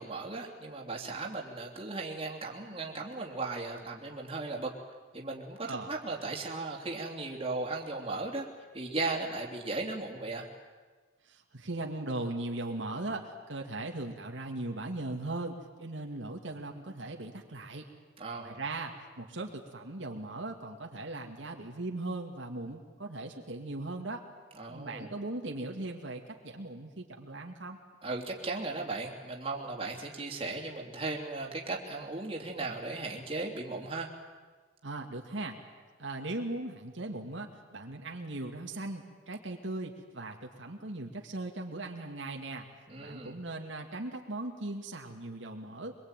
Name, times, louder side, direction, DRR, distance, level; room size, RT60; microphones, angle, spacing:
voice 1, 0.0-4.7 5.1-8.5 8.7-10.5 18.2-18.6 24.6-25.1 28.0-34.1 42.9-43.4, right 3 dB, 30° right, -1 dB, 3.2 m, -37 dB
voice 2, 11.3-17.8 18.4-24.2 24.7-27.8 34.8-35.6 36.0-42.6 43.0-46.0, right 2 dB, 70° right, 2 dB, 2.3 m, -39 dB
24.5 x 23.0 x 9.1 m, 1.4 s
head